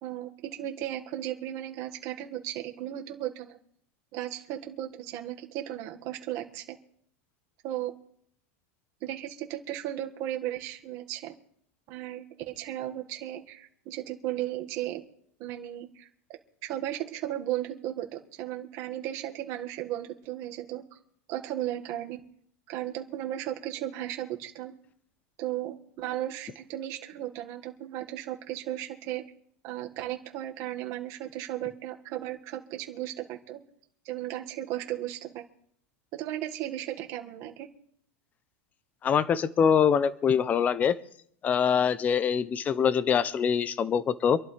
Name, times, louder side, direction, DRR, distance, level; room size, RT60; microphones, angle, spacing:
voice 1, 0.0-3.6 4.1-6.6 7.6-7.9 9.0-11.3 11.9-15.0 15.4-16.1 16.6-20.8 21.3-22.2 22.7-24.7 25.4-29.2 29.6-33.6 34.1-35.4 36.1-37.7, right 13 dB, 45° right, 3 dB, 1.8 m, -35 dB
voice 2, 39.0-41.0 41.4-44.4, left 7 dB, 20° left, 16 dB, 0.6 m, -24 dB
26.0 x 12.0 x 3.4 m, 0.65 s
supercardioid pair, 150°, 8 cm